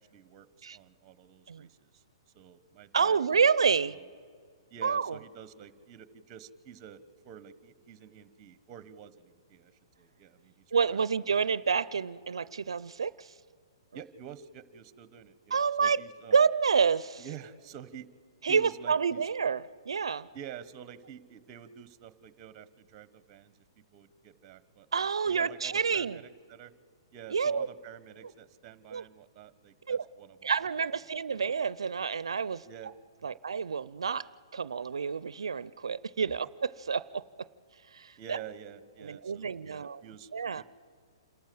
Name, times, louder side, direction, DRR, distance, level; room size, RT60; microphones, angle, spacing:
voice 1, 0.0-2.0 2.3-4.0 4.7-7.0 7.2-9.7 10.0-11.4 13.9-16.4 17.2-18.1 18.5-19.2 20.3-23.5 23.9-26.7 27.1-30.5 32.7-32.9 33.2-33.4 38.2-40.6, right 9 dB, 30° right, 15 dB, 1.0 m, -49 dB
voice 2, 2.9-4.0 4.8-5.2 10.7-13.3 15.5-16.0 16.3-17.2 18.4-20.3 24.9-26.2 27.3-27.7 28.9-29.0 29.9-30.0 30.4-32.6 33.2-34.2 34.5-37.2 37.9-38.4 39.0-40.0 40.3-40.6, right 6 dB, 90° right, 18 dB, 0.4 m, -28 dB
27.5 x 13.0 x 7.7 m, 2.1 s
hypercardioid pair, 140°, 3 cm